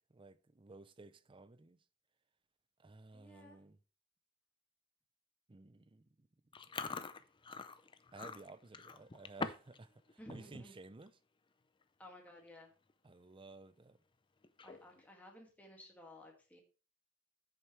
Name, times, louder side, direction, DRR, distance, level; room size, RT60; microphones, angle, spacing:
voice 1, 0.1-1.8 2.8-3.8 5.5-6.3 8.1-11.1 13.0-14.0, right 3 dB, 25° right, 0.5 m, -55 dB
voice 2, 3.1-3.6 10.2-10.8 12.0-12.7 14.6-16.6, left 1 dB, 5° left, 2.0 m, -55 dB
Chewing mastication, 6.5-9.8 10.1-10.4 10.8-11.1 11.8-11.9 12.1-12.5 12.9-13.0 14.4-15.0, left 4 dB, 25° left, 0.5 m, -44 dB
13.0 x 6.7 x 3.2 m
head